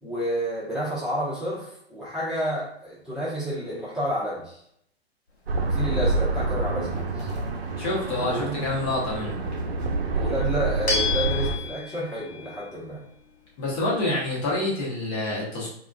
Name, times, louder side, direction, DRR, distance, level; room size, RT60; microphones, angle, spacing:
voice 1, 0.0-4.6 5.7-7.3 8.1-8.6 10.1-13.0, equal, ahead, -11 dB, 1.0 m, -30 dB
sound 1, 5.3-14.7, left 5 dB, 85° left, 0.8 m, -36 dB
sound 2, 5.5-11.6, right 3 dB, 70° right, 0.6 m, -27 dB
voice 2, 7.8-9.4 13.6-15.7, left 2 dB, 35° left, -5 dB, 1.1 m, -27 dB
3.5 x 2.4 x 2.2 m, 0.71 s
figure-of-eight pair, 110°, 32 cm